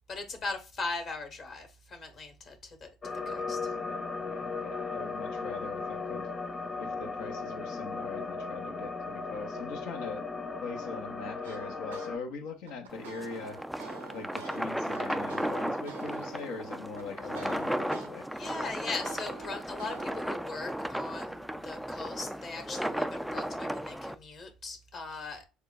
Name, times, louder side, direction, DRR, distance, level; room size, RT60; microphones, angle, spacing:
voice 1, 0.1-3.6 18.3-25.4, left 3 dB, 45° left, 1.3 m, -39 dB
sound 1, 3.0-12.2, left 4 dB, 25° left, 0.7 m, -36 dB
voice 2, 3.4-6.3 6.8-10.2 10.6-13.6 14.1-18.3, left 4 dB, 65° left, 0.8 m, -42 dB
sound 2, 11.4-12.1 12.5-18.1 18.5-20.2, right 5 dB, 80° right, 0.7 m, -47 dB
sound 3, 12.9-24.2, equal, ahead, 0.3 m, -35 dB
6.4 x 2.2 x 2.5 m
figure-of-eight pair, 60°, 0 cm